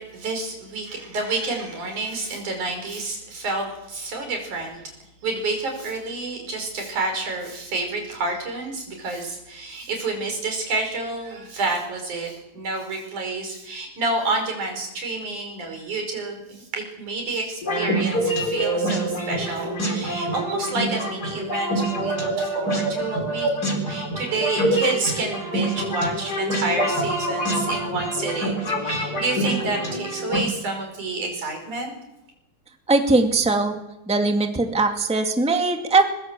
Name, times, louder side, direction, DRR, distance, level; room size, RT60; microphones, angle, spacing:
voice 1, 0.0-4.8 5.2-23.5 23.8-31.9, right 3 dB, 90° right, 3 dB, 6.9 m, -29 dB
sound 1, 17.6-30.4, right 1 dB, 30° left, 4.6 m, -26 dB
voice 2, 32.9-33.8 34.1-36.1, right 3 dB, ahead, 4 dB, 1.9 m, -20 dB
22.5 x 22.0 x 7.7 m, 0.93 s
omnidirectional pair, 3.4 m